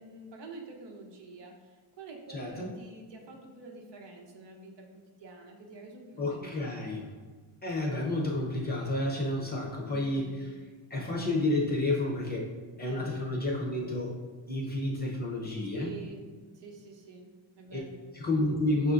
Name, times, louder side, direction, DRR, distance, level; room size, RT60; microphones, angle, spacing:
voice 1, 0.0-7.0 9.9-10.4 12.8-13.1 15.7-18.0, right 3 dB, 60° right, 2 dB, 0.8 m, -48 dB
voice 2, 2.3-2.7 6.2-7.0 7.6-10.3 10.9-12.5 12.8-14.1 14.5-15.9 17.7-17.8 18.1-18.9, left 1 dB, 20° left, -3 dB, 0.6 m, -30 dB
5.9 x 2.6 x 2.4 m, 1.4 s
cardioid pair, 115°, 49 cm